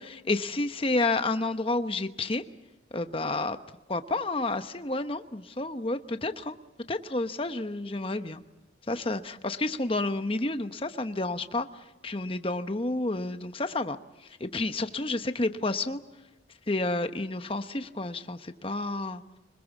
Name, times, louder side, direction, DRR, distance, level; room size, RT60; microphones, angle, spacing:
voice 1, 0.0-2.4 2.9-3.6 3.9-6.5 6.9-8.4 8.9-11.7 12.0-14.0 14.4-16.0 16.7-19.2, left 2 dB, 30° left, 9 dB, 1.0 m, -30 dB
25.5 x 20.5 x 7.2 m, 1.1 s
head